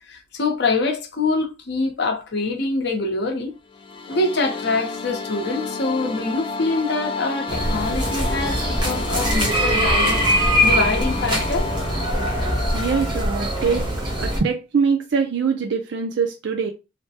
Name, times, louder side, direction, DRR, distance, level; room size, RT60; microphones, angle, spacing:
voice 1, 0.1-3.6 4.1-11.7, left 3 dB, 55° left, 0.7 m, -25 dB
sound 1, 3.7-13.8, left 4 dB, 25° left, 0.3 m, -31 dB
sound 2, 7.5-14.4, equal, 25° right, 0.6 m, -22 dB
voice 2, 12.7-13.8 14.2-16.7, right 5 dB, 60° right, 0.4 m, -23 dB
3.3 x 2.1 x 2.7 m
head